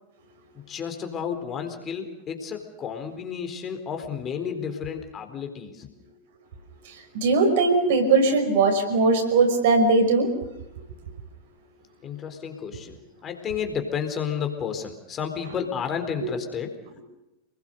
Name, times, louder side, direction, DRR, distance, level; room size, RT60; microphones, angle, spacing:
voice 1, 0.7-5.9 12.0-16.7, left 7 dB, 25° left, 5 dB, 4.1 m, -32 dB
voice 2, 7.1-10.3 16.2-16.3, right 3 dB, 55° right, 6 dB, 5.8 m, -20 dB
29.0 x 21.0 x 6.7 m, 0.93 s
figure-of-eight pair, 90°, 0 cm